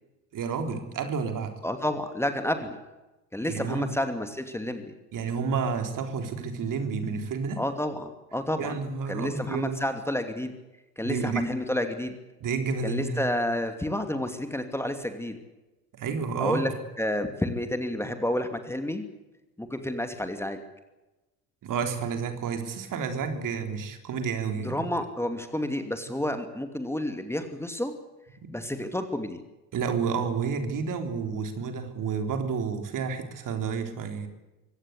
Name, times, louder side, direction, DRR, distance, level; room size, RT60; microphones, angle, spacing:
voice 1, 0.3-1.5 3.5-3.9 5.1-7.6 8.6-9.8 11.0-11.5 12.4-13.2 15.9-16.7 21.6-24.8 28.4-28.5 29.7-34.3, right 5 dB, 45° right, 6 dB, 3.7 m, -30 dB
voice 2, 1.6-2.8 3.3-4.9 7.6-8.8 9.1-10.5 11.0-12.1 12.8-15.4 16.4-16.7 17.0-19.1 19.6-20.6 24.6-27.9 28.5-29.4, left 1 dB, 5° left, 7 dB, 2.6 m, -30 dB
25.0 x 17.0 x 8.3 m, 1.0 s
figure-of-eight pair, 60°, 45 cm